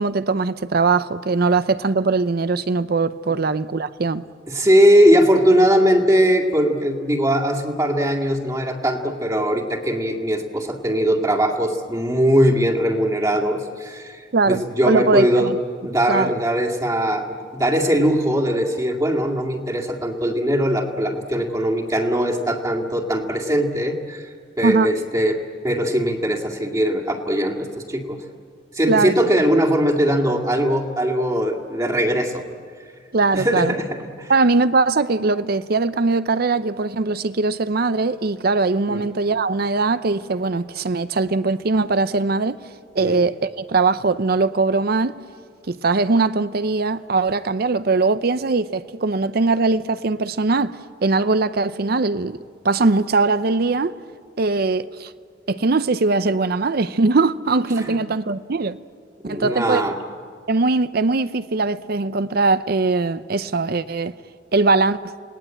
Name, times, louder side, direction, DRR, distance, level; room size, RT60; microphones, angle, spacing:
voice 1, 0.0-4.2 14.3-15.6 16.1-16.3 24.6-24.9 28.9-29.1 33.1-33.7 34.3-42.6 42.9-45.2 45.7-52.4 52.6-53.9 54.4-55.1 55.5-58.8 59.2-59.8 60.5-64.1 64.5-65.1, right 3 dB, 55° right, 0.6 m, -20 dB
voice 2, 4.5-15.5 15.8-24.3 24.6-25.4 25.6-28.2 28.7-32.4 33.3-34.3 38.9-39.0 43.0-43.2 57.8-58.0 59.2-60.0, equal, 20° right, 2.1 m, -20 dB
28.5 x 19.0 x 8.9 m
head